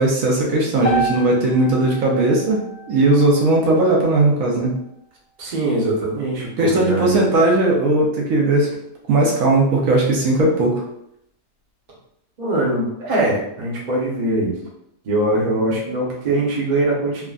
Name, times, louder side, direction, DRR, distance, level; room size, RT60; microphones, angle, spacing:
voice 1, 0.0-4.7 6.6-8.7 9.1-10.8, right 2 dB, 75° right, -2 dB, 1.0 m, -17 dB
sound 1, 0.8-5.0, right 2 dB, 55° left, 0.9 m, -30 dB
voice 2, 5.4-7.2 12.4-14.5 15.0-17.3, right 1 dB, 40° right, -4 dB, 0.7 m, -22 dB
3.4 x 2.1 x 2.3 m, 0.75 s
omnidirectional pair, 1.5 m